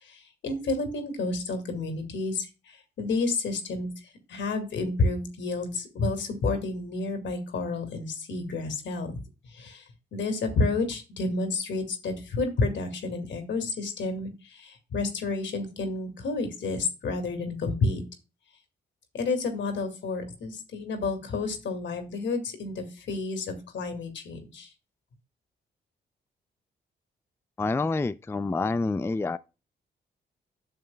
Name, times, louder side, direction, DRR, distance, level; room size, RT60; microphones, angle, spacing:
voice 1, 0.0-3.9 4.3-9.2 9.5-9.8 10.1-18.0 19.1-24.7, left 3 dB, 75° left, 2.1 m, -30 dB
voice 2, 27.6-29.4, left 3 dB, 15° left, 0.4 m, -27 dB
11.0 x 6.5 x 2.2 m
supercardioid pair, 60°, 19 cm